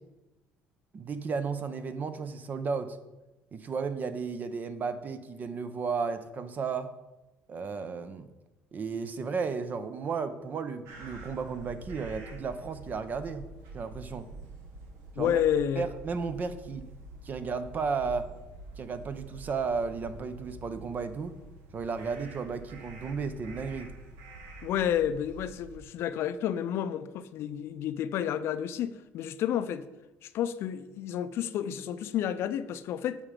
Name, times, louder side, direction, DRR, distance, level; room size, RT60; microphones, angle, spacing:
voice 1, 0.9-3.0 3.5-6.9 7.5-8.3 8.7-13.5 13.7-14.3 15.2-15.4 15.8-16.9 17.2-18.3 18.8-21.4 21.7-23.9, right 5 dB, 40° right, 0.7 m, -34 dB
sound 1, 10.9-25.8, right 2 dB, 80° right, 1.3 m, -47 dB
voice 2, 15.2-15.9 24.6-29.9 30.2-33.2, left 10 dB, 65° left, 0.4 m, -30 dB
7.4 x 4.9 x 5.1 m
cardioid pair, 100°, 5 cm